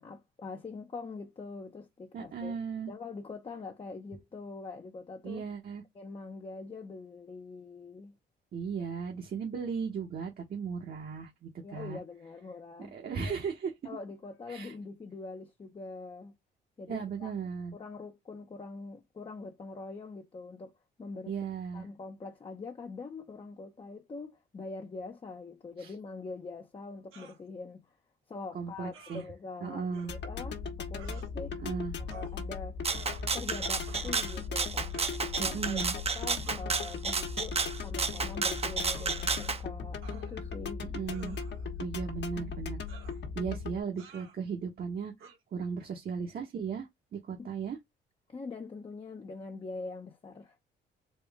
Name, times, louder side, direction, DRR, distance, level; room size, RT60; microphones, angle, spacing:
voice 1, 0.0-2.5 2.9-5.4 5.9-8.2 11.6-13.0 13.2-13.4 13.8-16.3 16.8-17.3 17.7-20.7 21.0-21.3 21.7-27.8 28.3-31.6 32.0-32.8 33.3-34.9 35.4-40.9 47.4-47.5 48.3-50.6, left 3 dB, 25° left, 0.7 m, -43 dB
voice 2, 2.1-2.9 5.2-5.8 8.5-12.0 12.9-13.7 14.5-14.7 16.9-17.7 21.3-21.8 25.8-25.9 28.5-29.2 29.6-30.1 31.6-31.9 35.4-35.9 40.8-41.4 41.8-42.8 43.3-45.1 45.5-47.8, right 6 dB, 50° right, 1.2 m, -36 dB
sound 1, 27.1-27.4 28.9-29.2 29.9-30.1 30.9-31.3 32.1-32.4 32.9-33.5 33.9-34.3 34.9-35.2 36.4-36.7 37.6-37.8 38.9-39.2 40.0-40.6 41.1-41.7 42.9-43.2 44.0-44.4 45.2-45.4, right 5 dB, 85° right, 1.5 m, -52 dB
sound 2, 30.1-43.8, left 5 dB, 60° left, 1.3 m, -38 dB
Rattle (instrument), 32.8-39.6, right 4 dB, 30° right, 0.8 m, -32 dB
4.3 x 2.5 x 3.5 m
cardioid pair, 90°, 20 cm